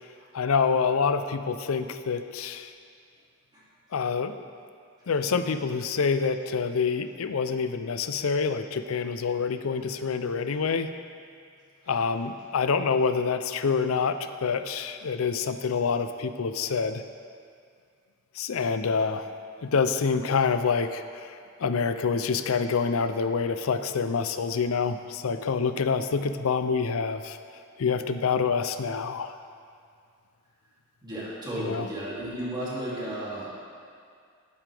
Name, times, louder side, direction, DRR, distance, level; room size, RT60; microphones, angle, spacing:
voice 1, 0.3-2.7 3.9-4.3 5.1-10.9 11.9-17.0 18.4-19.3 19.6-21.3 21.6-27.4 27.8-29.3 31.6-31.9, left 5 dB, 80° left, 10 dB, 0.5 m, -27 dB
voice 2, 31.0-33.5, right 1 dB, 20° right, -9 dB, 2.7 m, -33 dB
11.0 x 9.9 x 3.4 m, 2.3 s
head